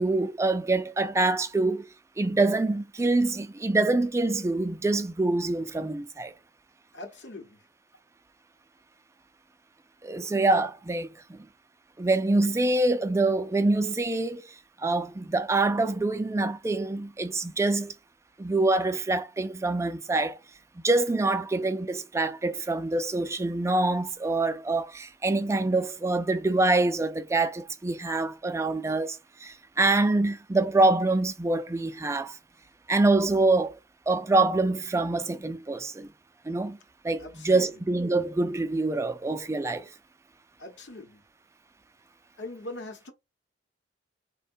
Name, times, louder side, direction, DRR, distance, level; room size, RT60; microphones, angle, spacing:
voice 1, 0.0-1.9 2.2-6.3 10.0-11.4 12.0-14.4 14.8-17.9 18.4-20.4 20.8-32.4 32.9-33.8 34.1-36.1 36.5-36.8 37.0-39.9, right 2 dB, 15° right, 0.3 m, -25 dB
voice 2, 6.9-7.6 37.2-37.7 40.6-41.2 42.4-43.1, left 2 dB, 80° left, 0.9 m, -41 dB
4.3 x 2.2 x 2.5 m
head